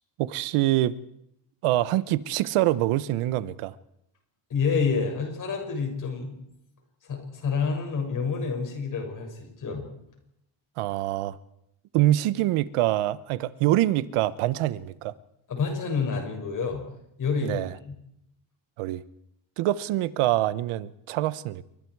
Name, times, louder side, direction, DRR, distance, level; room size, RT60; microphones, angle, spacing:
voice 1, 0.2-0.9 1.6-3.7 10.8-11.4 11.9-15.1 17.4-17.7 18.8-19.0 19.6-21.7, right 15 dB, 90° right, 1.1 m, -25 dB
voice 2, 4.5-6.3 7.0-9.8 15.5-16.8 17.2-17.6 17.9-18.0, left 5 dB, 40° left, 6.5 m, -28 dB
28.5 x 24.5 x 4.8 m
cardioid pair, 170°, 49 cm